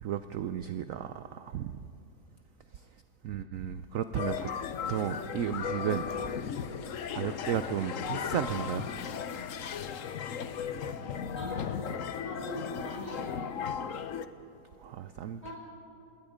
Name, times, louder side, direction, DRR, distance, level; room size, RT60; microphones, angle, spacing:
voice 1, 0.0-1.7 3.2-4.5 4.9-6.1 7.1-8.9 14.8-15.5, right 9 dB, 70° right, 10 dB, 0.7 m, -34 dB
sound 1, 4.2-14.3, left 7 dB, 55° left, 1.0 m, -36 dB
voice 2, 11.3-11.7 12.2-13.3 15.4-15.5, right 1 dB, 40° left, -4 dB, 7.0 m, -41 dB
26.5 x 20.5 x 5.1 m, 2.6 s
omnidirectional pair, 2.0 m